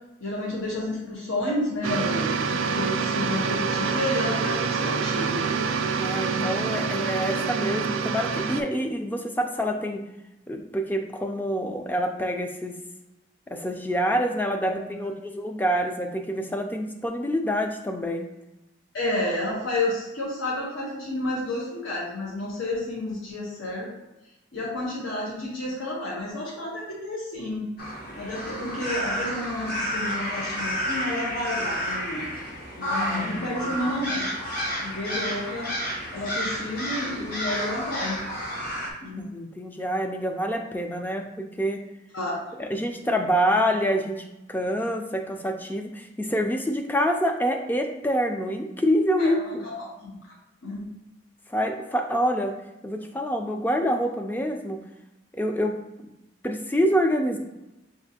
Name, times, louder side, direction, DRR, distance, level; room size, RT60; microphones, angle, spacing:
voice 1, 0.2-5.5 6.2-6.5 14.7-15.1 18.9-23.9 24.5-27.7 28.2-32.3 32.8-34.3 34.7-35.7 36.1-38.2 39.0-39.3 42.1-42.4 49.2-50.2 50.6-50.9, left 1 dB, 80° left, -5 dB, 0.9 m, -31 dB
sound 1, 1.8-8.6, right 5 dB, 80° right, 0.4 m, -26 dB
voice 2, 6.0-10.0 10.5-12.8 13.5-18.3 32.9-33.8 39.2-41.8 42.6-49.7 51.5-52.5 52.8-54.8 55.3-55.8 56.4-57.4, equal, 10° left, 4 dB, 0.3 m, -26 dB
sound 2, 27.8-38.9, equal, 50° left, 0.9 m, -31 dB
6.1 x 2.4 x 2.7 m, 0.94 s
head